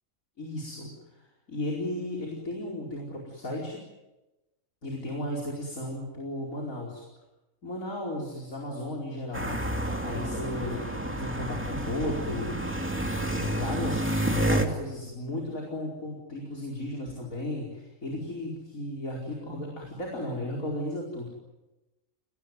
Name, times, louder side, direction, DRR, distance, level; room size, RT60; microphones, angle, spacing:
voice 1, 0.4-3.8 4.8-7.0 7.6-9.6 10.0-12.5 13.3-21.3, left 1 dB, 65° left, -2 dB, 5.2 m, -35 dB
sound 1, 9.3-14.7, right 1 dB, 10° right, 2.4 m, -29 dB
29.0 x 20.0 x 9.5 m, 1.0 s
omnidirectional pair, 1.6 m